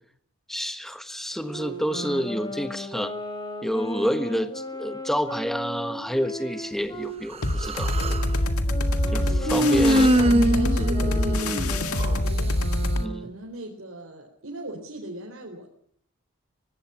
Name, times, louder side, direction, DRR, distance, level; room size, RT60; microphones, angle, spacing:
voice 1, 0.5-3.1 3.6-8.0 9.1-9.2 9.5-10.1 13.0-13.3, equal, ahead, 9 dB, 1.3 m, -29 dB
Wind instrument woodwind instrument, 1.3-7.2 7.9-13.3, equal, 20° left, 4.4 m, -35 dB
Human voice, 7.3-8.3 9.5-12.2, equal, 25° right, 0.9 m, -23 dB
sound 1, 7.4-13.0, left 1 dB, 90° left, 1.9 m, -25 dB
voice 2, 9.0-9.5 9.9-12.6 13.2-15.7, right 1 dB, 65° right, -1 dB, 4.4 m, -37 dB
24.5 x 19.0 x 5.8 m, 0.64 s
head